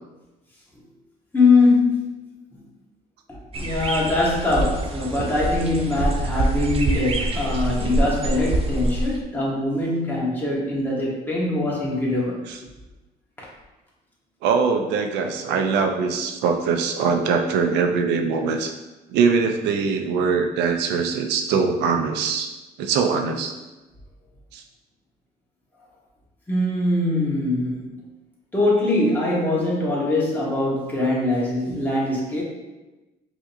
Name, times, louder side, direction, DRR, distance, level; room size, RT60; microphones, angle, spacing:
voice 1, 1.3-2.1 3.6-12.4 26.5-28.0 28.5-32.4, left 2 dB, 10° left, -6 dB, 1.3 m, -22 dB
sound 1, 3.5-9.2, right 1 dB, 35° right, 0.5 m, -25 dB
voice 2, 14.4-18.7 19.1-22.5 22.8-23.5 24.5-24.6, right 5 dB, 85° right, 5 dB, 0.5 m, -22 dB
4.9 x 2.8 x 2.6 m, 1.1 s
cardioid pair, 110°, 17 cm